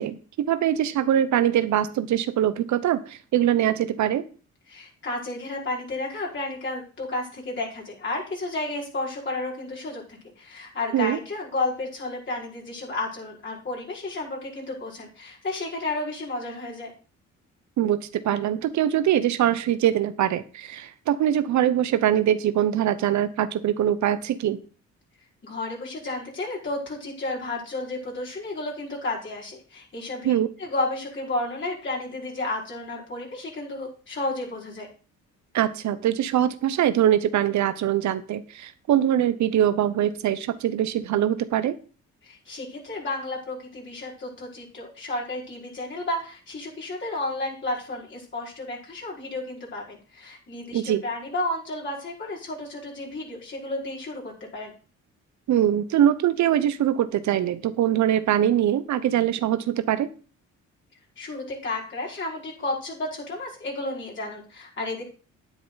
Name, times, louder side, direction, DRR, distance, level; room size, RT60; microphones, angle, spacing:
voice 1, 0.0-4.2 10.9-11.2 17.8-24.6 30.2-30.5 35.5-41.8 50.7-51.0 55.5-60.1, right 11 dB, 70° right, 13 dB, 0.9 m, -23 dB
voice 2, 4.7-10.0 10.4-16.9 25.4-30.3 30.6-34.9 42.2-54.7 61.2-65.0, left 2 dB, 40° left, -3 dB, 5.0 m, -32 dB
10.0 x 9.3 x 4.0 m, 0.37 s
cardioid pair, 90°, 30 cm